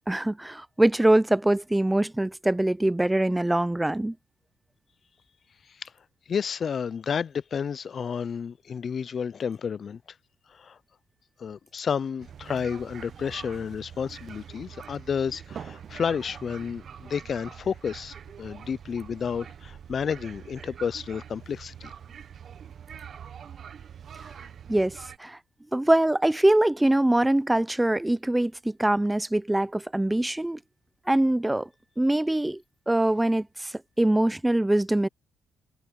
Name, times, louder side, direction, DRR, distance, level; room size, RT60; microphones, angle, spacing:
voice 1, 0.1-4.1 24.7-25.4 25.7-30.6 31.1-31.7 32.0-32.6 32.9-35.1, right 1 dB, 10° right, 0.6 m, -23 dB
voice 2, 6.3-10.0 10.5-10.8 11.4-21.9, left 7 dB, 50° left, 0.4 m, -31 dB
sound 1, 12.2-25.2, right 8 dB, 55° right, 1.0 m, -44 dB
cardioid pair, 90°, 0 cm